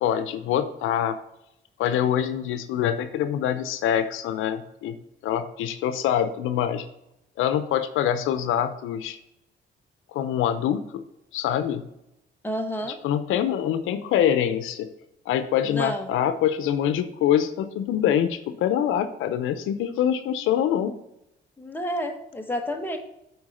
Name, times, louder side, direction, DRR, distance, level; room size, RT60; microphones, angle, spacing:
voice 1, 0.0-1.2 1.8-5.0 5.2-6.8 7.4-9.2 10.1-11.0 11.3-11.8 13.0-14.9 15.3-20.9, left 10 dB, 90° left, 11 dB, 0.7 m, -25 dB
voice 2, 12.4-13.0 15.6-16.1 21.6-23.0, equal, 10° left, 3 dB, 1.4 m, -30 dB
7.9 x 4.6 x 5.6 m, 0.83 s
cardioid pair, 90°, 20 cm